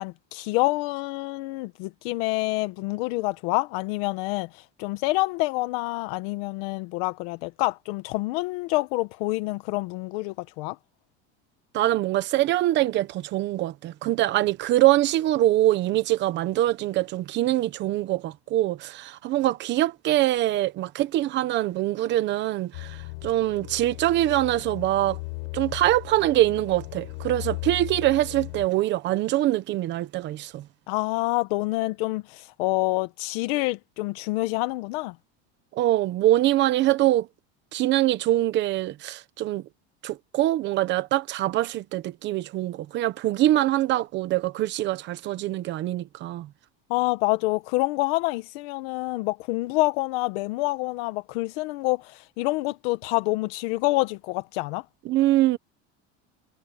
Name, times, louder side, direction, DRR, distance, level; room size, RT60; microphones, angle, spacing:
voice 1, 0.0-10.8 30.9-35.1 46.9-54.8, left 21 dB, 65° left, 1.0 m, -27 dB
voice 2, 11.7-23.0 23.2-25.2 25.5-30.6 35.8-37.3 37.7-39.6 40.0-46.5 55.1-55.6, right 14 dB, 35° right, 0.9 m, -24 dB
sound 1, 22.7-28.7, left 29 dB, 85° left, 4.5 m, -37 dB
cardioid pair, 180°, 32 cm